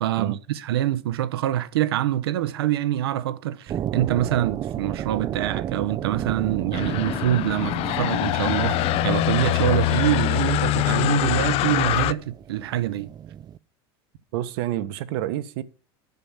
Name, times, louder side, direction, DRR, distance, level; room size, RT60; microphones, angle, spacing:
voice 1, 0.0-13.1, right 13 dB, 90° right, 0.9 m, -25 dB
sound 1, 3.7-13.6, right 10 dB, 35° right, 0.5 m, -33 dB
sound 2, 6.7-12.1, left 16 dB, 50° left, 0.6 m, -23 dB
voice 2, 14.3-15.6, right 13 dB, 75° right, 1.2 m, -28 dB
10.5 x 7.1 x 7.3 m
supercardioid pair, 110°, 13 cm